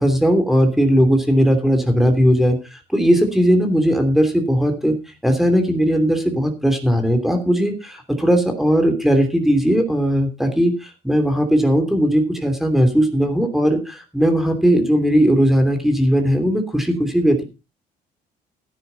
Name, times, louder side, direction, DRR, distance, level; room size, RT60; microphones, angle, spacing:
voice 1, 0.0-5.0 5.2-17.4, equal, ahead, 5 dB, 3.0 m, -18 dB
14.0 x 10.0 x 4.1 m, 0.29 s
cardioid pair, 110°, 17 cm